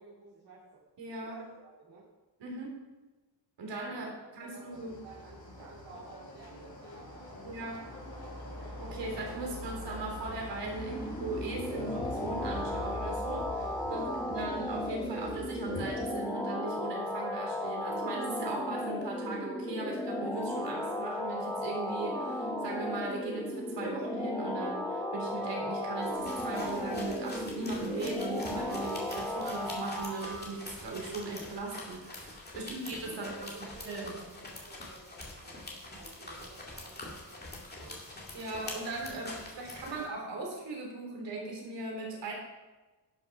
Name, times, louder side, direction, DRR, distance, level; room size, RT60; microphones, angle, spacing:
voice 1, 0.0-0.8 1.2-2.1 3.9-8.0 10.9-11.0 13.8-14.3 32.5-38.0 39.4-39.5 39.8-40.0, right 4 dB, 70° right, -7 dB, 3.0 m, -53 dB
voice 2, 1.0-1.4 2.4-2.8 3.6-4.9 7.4-7.9 8.8-33.5 33.9-34.2 38.3-42.3, right 3 dB, 90° right, -1 dB, 3.7 m, -39 dB
sound 1, 4.7-16.2, left 1 dB, 60° left, 3.8 m, -43 dB
sound 2, 10.6-30.5, left 1 dB, 10° left, 1.1 m, -35 dB
sound 3, 26.0-40.1, left 2 dB, 25° left, 2.4 m, -45 dB
11.5 x 7.0 x 5.9 m, 1.2 s
wide cardioid pair, 150°, 42 cm